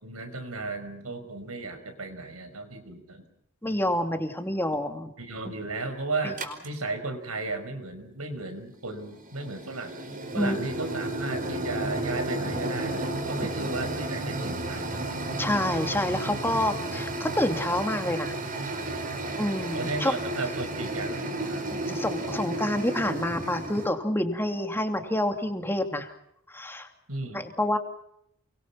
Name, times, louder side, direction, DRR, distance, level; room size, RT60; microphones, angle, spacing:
voice 1, 0.0-3.2 5.2-10.0 10.3-15.0 19.7-21.7 27.1-27.4, right 3 dB, 85° right, 8 dB, 5.3 m, -35 dB
voice 2, 3.6-5.1 5.4-5.5 6.2-6.3 10.3-10.6 15.4-18.3 19.4-20.2 21.7-26.1 26.5-26.9 27.3-27.8, left 1 dB, 10° left, 5 dB, 2.8 m, -28 dB
sound 1, 6.4-6.7 9.0-23.9, right 1 dB, 40° right, 5.1 m, -32 dB
29.0 x 24.0 x 5.9 m, 0.75 s
head